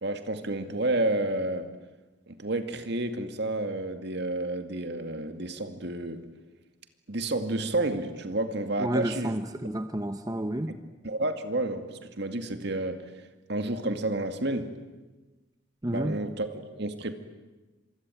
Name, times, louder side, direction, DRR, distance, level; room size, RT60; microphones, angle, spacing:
voice 1, 0.0-1.7 2.3-6.2 7.1-9.4 10.7-13.0 13.5-14.8 15.9-17.1, right 2 dB, 55° right, 8 dB, 2.2 m, -30 dB
voice 2, 8.8-10.7 15.8-16.2, right 1 dB, 20° right, 9 dB, 0.9 m, -30 dB
26.5 x 24.0 x 9.3 m, 1.2 s
head